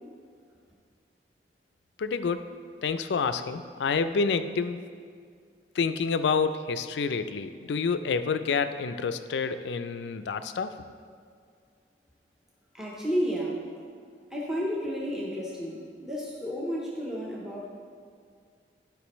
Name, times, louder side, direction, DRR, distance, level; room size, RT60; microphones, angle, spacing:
voice 1, 2.0-2.5 2.8-4.8 5.7-10.7, left 5 dB, 80° left, 11 dB, 0.4 m, -28 dB
voice 2, 12.7-13.6 14.3-17.7, equal, 5° right, -4 dB, 0.8 m, -31 dB
11.5 x 5.1 x 3.1 m, 2.1 s
head